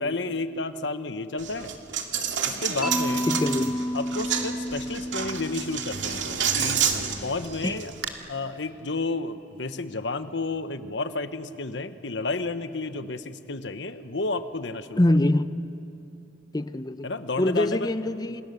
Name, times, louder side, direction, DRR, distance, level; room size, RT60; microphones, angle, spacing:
voice 1, 0.0-1.7 2.4-3.3 3.9-6.9 7.2-7.9 8.3-15.0 17.0-17.9, left 3 dB, 75° left, 1.2 m, -31 dB
Coin (dropping), 1.4-8.1, right 7 dB, 90° right, 2.3 m, -29 dB
Mallet percussion, 2.8-6.8, equal, ahead, 1.5 m, -31 dB
voice 2, 3.3-3.8 7.6-7.8 15.0-15.5 16.5-17.1 17.4-18.4, left 1 dB, 20° left, 0.7 m, -24 dB
29.5 x 29.0 x 7.0 m
head